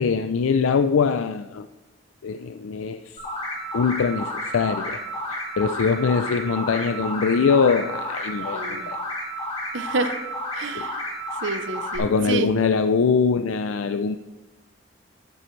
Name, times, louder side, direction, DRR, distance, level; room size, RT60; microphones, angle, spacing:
voice 1, 0.0-1.7 2.2-3.2 3.7-5.0 5.3-9.0 10.7-10.9 12.0-14.2, left 5 dB, 90° left, 9 dB, 0.4 m, -22 dB
sound 1, 3.2-12.0, equal, 30° left, 3.0 m, -31 dB
voice 2, 8.5-8.9 9.7-10.2 10.5-11.0 11.4-12.5, right 3 dB, 70° right, 10 dB, 0.7 m, -28 dB
12.5 x 10.0 x 3.2 m, 1.1 s
head